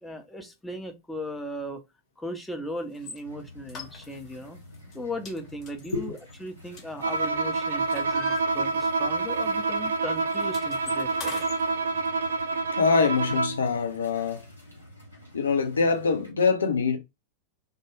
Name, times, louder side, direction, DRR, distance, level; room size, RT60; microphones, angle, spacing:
voice 1, 0.0-1.8 2.2-4.6 4.9-11.4, equal, 5° left, 0.6 m, -37 dB
sound 1, 2.9-3.2 3.7-4.4 4.7-5.0 5.3-7.3 7.6-9.1 9.4-9.6 9.8-11.6, left 4 dB, 30° left, 0.9 m, -42 dB
sound 2, 3.2-16.3, left 1 dB, 90° left, 1.0 m, -49 dB
Bowed string instrument, 7.0-13.7, right 3 dB, 65° right, 0.3 m, -27 dB
voice 2, 12.7-14.4 15.3-17.0, left 5 dB, 70° left, 0.6 m, -24 dB
2.3 x 2.2 x 2.9 m
figure-of-eight pair, 90°, 0 cm